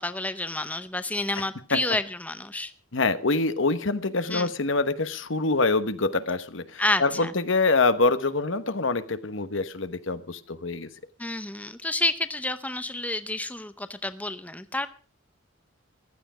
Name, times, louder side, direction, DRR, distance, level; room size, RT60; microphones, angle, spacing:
voice 1, 0.0-2.7 4.3-4.5 6.8-7.3 11.2-14.9, left 2 dB, 10° left, 11 dB, 0.7 m, -29 dB
voice 2, 2.9-10.9, left 3 dB, 70° left, 11 dB, 1.2 m, -25 dB
15.0 x 13.0 x 4.9 m, 0.37 s
head